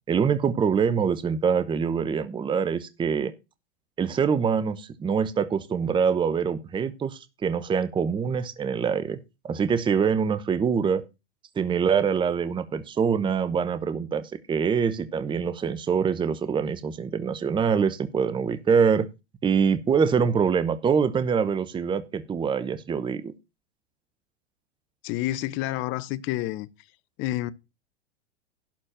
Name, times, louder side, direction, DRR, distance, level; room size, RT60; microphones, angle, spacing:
voice 1, 0.1-3.3 4.0-9.2 9.4-11.0 11.6-19.1 19.4-23.3, right 6 dB, 15° right, 0.9 m, -24 dB
voice 2, 25.0-26.7 27.2-27.5, left 15 dB, 35° left, 0.8 m, -29 dB
12.0 x 4.4 x 7.4 m
hypercardioid pair, 100°, 34 cm